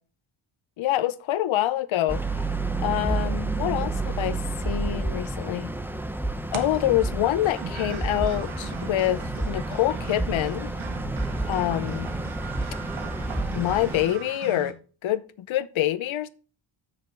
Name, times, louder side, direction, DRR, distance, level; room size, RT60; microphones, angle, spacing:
voice 1, 0.8-2.2 2.8-4.4 4.6-5.7 6.5-10.7 11.5-12.1 13.5-14.8 15.0-16.3, left 13 dB, 85° left, 0.8 m, -26 dB
sound 1, 2.1-14.1, right 2 dB, 5° right, 0.9 m, -30 dB
Bar Slots Gambling Machine - Game, 6.5-14.7, right 7 dB, 85° right, 1.2 m, -39 dB
7.6 x 6.4 x 4.5 m
cardioid pair, 95°, 46 cm